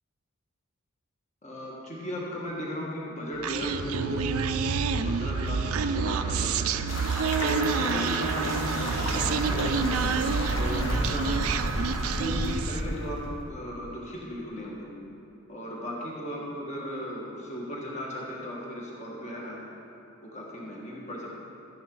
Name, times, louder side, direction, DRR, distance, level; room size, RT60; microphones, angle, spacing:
voice 1, 1.4-4.8 5.0-6.8 7.4-11.6 12.2-14.9 15.5-19.6 20.2-21.3, equal, 35° left, -4 dB, 1.6 m, -36 dB
Human voice, 3.4-12.9, right 5 dB, 90° right, 0.4 m, -28 dB
sound 1, 6.9-13.3, left 1 dB, 65° left, 1.3 m, -32 dB
12.0 x 9.9 x 3.9 m, 2.9 s
head